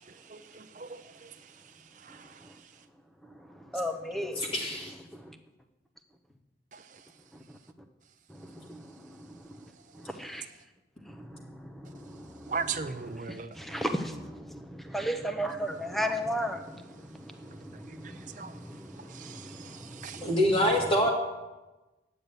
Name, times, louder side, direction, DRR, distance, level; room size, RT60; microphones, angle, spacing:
voice 1, 0.1-1.3 2.0-2.4 6.7-6.8 12.5-13.6 17.9-18.5 19.1-20.3, right 5 dB, 45° right, 8 dB, 0.6 m, -39 dB
voice 2, 3.7-4.4 5.2-5.3 8.4-9.1 10.1-10.5 11.1-12.3 13.3-20.3, equal, ahead, 6 dB, 0.7 m, -36 dB
voice 3, 4.4-4.9 20.2-21.1, equal, 30° left, -1 dB, 2.2 m, -25 dB
9.7 x 6.8 x 9.0 m, 1.1 s
head